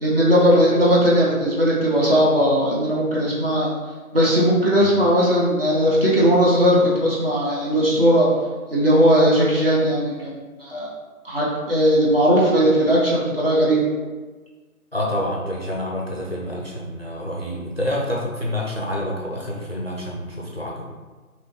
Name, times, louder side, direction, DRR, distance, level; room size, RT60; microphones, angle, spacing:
voice 1, 0.0-3.7 4.1-8.3 8.7-10.3 10.6-10.9 11.2-13.8, equal, 40° right, -6 dB, 0.8 m, -18 dB
voice 2, 14.9-20.8, left 1 dB, 45° left, -2 dB, 0.4 m, -27 dB
3.0 x 2.8 x 3.0 m, 1.3 s
figure-of-eight pair, 165°, 44 cm